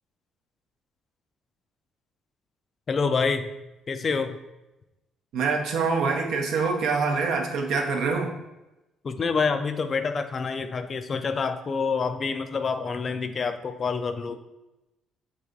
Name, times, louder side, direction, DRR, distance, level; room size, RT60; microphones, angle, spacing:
voice 1, 2.9-3.5 3.9-4.4 9.0-14.4, left 5 dB, 45° left, 9 dB, 0.3 m, -27 dB
voice 2, 5.3-8.3, right 4 dB, 70° right, 1 dB, 0.6 m, -25 dB
3.2 x 2.6 x 3.7 m, 0.98 s
hypercardioid pair, 55°, 0 cm